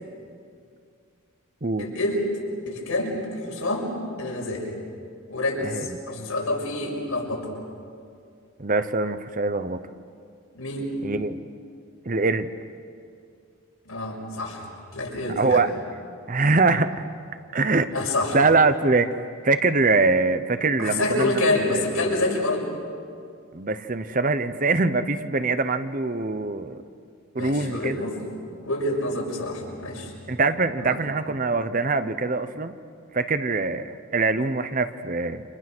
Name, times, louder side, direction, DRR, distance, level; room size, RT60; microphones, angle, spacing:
voice 1, 1.8-2.3 2.7-4.7 5.3-7.5 10.5-10.9 13.8-14.6 14.9-15.6 17.9-18.4 20.8-22.7 27.4-28.2 28.6-30.1 30.8-31.0, left 2 dB, 85° left, -2 dB, 6.6 m, -27 dB
voice 2, 8.6-9.8 11.0-11.4 12.1-12.5 15.4-15.7 16.3-16.9 17.5-17.9 18.3-19.2 19.4-21.3 21.7-21.8 23.5-26.8 27.3-28.0 30.3-32.7 33.1-35.4, right 3 dB, 40° right, 11 dB, 0.8 m, -23 dB
30.0 x 27.5 x 6.2 m, 2.3 s
head